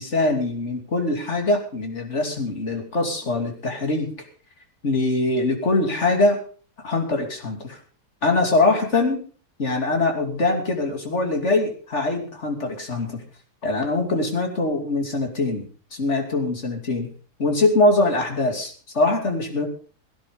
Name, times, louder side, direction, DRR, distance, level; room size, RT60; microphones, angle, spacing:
voice 1, 0.0-4.1 4.8-6.4 6.8-7.8 8.2-9.2 9.6-13.2 13.6-17.1 17.4-19.7, left 2 dB, 45° left, 4 dB, 3.1 m, -23 dB
17.0 x 10.5 x 5.2 m, 0.40 s
omnidirectional pair, 1.8 m